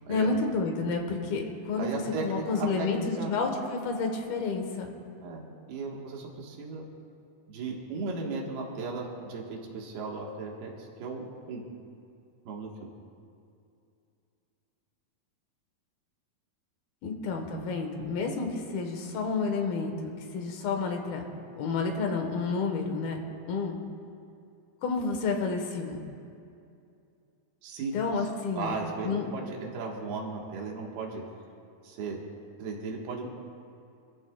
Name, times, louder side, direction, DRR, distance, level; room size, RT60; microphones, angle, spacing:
voice 1, 0.1-4.9 17.0-21.3 21.6-23.8 24.8-26.0 27.9-28.7 29.0-29.3, left 4 dB, 80° left, 3 dB, 3.3 m, -30 dB
voice 2, 1.8-3.3 5.2-5.4 5.7-6.8 7.5-11.6 12.5-12.7 27.6-27.9 28.5-31.2 31.8-32.2 32.6-33.3, right 4 dB, 85° right, -1 dB, 3.6 m, -36 dB
26.0 x 14.5 x 2.4 m, 2.5 s
omnidirectional pair, 4.3 m